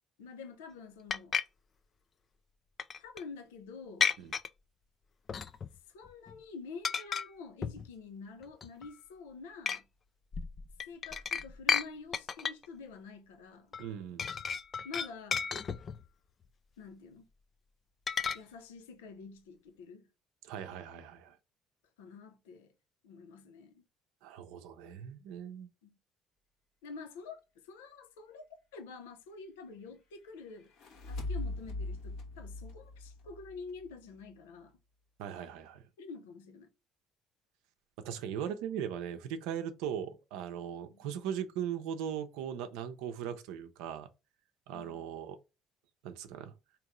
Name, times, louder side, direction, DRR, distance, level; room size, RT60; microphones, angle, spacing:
voice 1, 0.2-1.4 3.0-4.1 5.9-9.9 10.9-13.7 14.8-15.5 16.8-17.2 18.3-20.1 22.0-22.7 23.0-23.8 25.8-26.0 26.8-28.5 28.7-30.7 31.1-34.8 36.0-36.7 40.8-41.0 44.7-45.0, left 4 dB, 90° left, 0.6 m, -48 dB
sound 1, 1.1-1.4 2.8-3.2 4.0-4.5 5.3-5.8 6.1-6.4 6.8-7.3 7.6-7.9 8.4-8.9 9.7-9.8 10.3-11.9 12.1-12.7 13.7-13.9 14.2-16.1 18.1-18.4, left 6 dB, 45° left, 0.4 m, -33 dB
voice 2, 13.8-14.2 20.4-21.4 24.2-25.7 35.2-35.9 38.0-44.1 44.7-45.4 46.0-46.5, right 9 dB, 80° right, 0.6 m, -39 dB
sound 2, 30.6-33.9, left 2 dB, 75° left, 1.2 m, -40 dB
3.7 x 3.0 x 3.0 m
hypercardioid pair, 60°, 0 cm